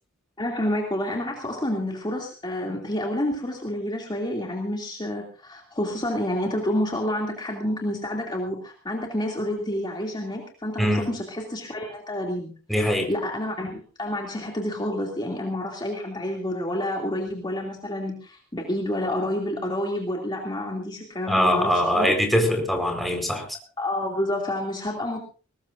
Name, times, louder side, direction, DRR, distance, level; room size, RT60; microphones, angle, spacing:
voice 1, 0.4-22.1 23.8-25.3, left 1 dB, 20° left, 0 dB, 2.8 m, -29 dB
voice 2, 10.8-11.1 12.7-13.1 21.3-23.5, equal, ahead, 2 dB, 4.4 m, -22 dB
21.5 x 20.0 x 2.6 m, 0.36 s
head